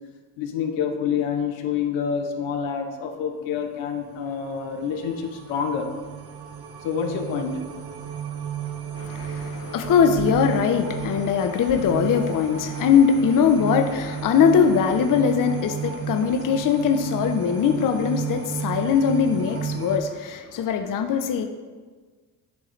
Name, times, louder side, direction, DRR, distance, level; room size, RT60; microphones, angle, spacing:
voice 1, 0.4-5.9 6.8-7.6, left 7 dB, 80° left, 3 dB, 0.9 m, -27 dB
sound 1, 3.8-20.0, right 8 dB, 55° right, 0.8 m, -33 dB
voice 2, 9.0-21.4, left 7 dB, 45° left, 6 dB, 0.7 m, -21 dB
10.5 x 3.7 x 3.2 m, 1.4 s
supercardioid pair, 60°, 45 cm